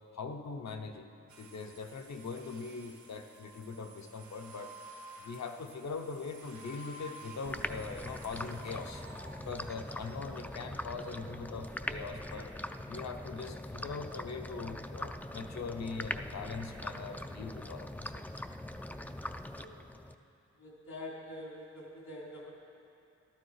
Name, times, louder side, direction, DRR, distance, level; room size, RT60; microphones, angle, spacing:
voice 1, 0.1-1.1 1.4-4.7 5.2-9.0 9.4-12.5 12.9-18.2, left 4 dB, 65° left, 6 dB, 0.9 m, -41 dB
sound 1, 1.3-13.0, right 1 dB, 75° right, 1.6 m, -53 dB
sound 2, 7.4-20.1, left 1 dB, 5° left, 0.4 m, -42 dB
voice 2, 18.9-19.2 19.5-19.9 20.6-22.5, left 1 dB, 80° left, -3 dB, 3.2 m, -46 dB
13.5 x 12.0 x 4.8 m, 2.6 s
wide cardioid pair, 80°, 29 cm